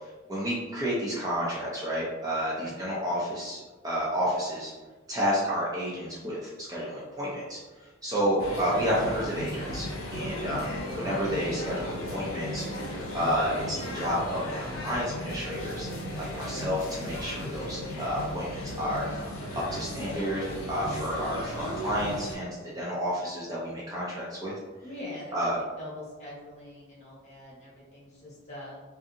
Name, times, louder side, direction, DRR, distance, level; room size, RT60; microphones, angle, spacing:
voice 1, 0.3-3.6 3.8-4.7 5.1-12.7 13.1-15.9 16.2-19.1 19.7-24.5 25.3-25.6, equal, 20° right, -6 dB, 0.4 m, -30 dB
sound 1, 8.4-22.3, left 1 dB, 80° left, 0.5 m, -36 dB
Brass instrument, 10.7-16.5, equal, 65° right, 0.8 m, -45 dB
voice 2, 19.7-20.1 24.8-28.8, left 1 dB, 35° left, -6 dB, 1.0 m, -43 dB
2.6 x 2.4 x 2.5 m, 1.2 s
head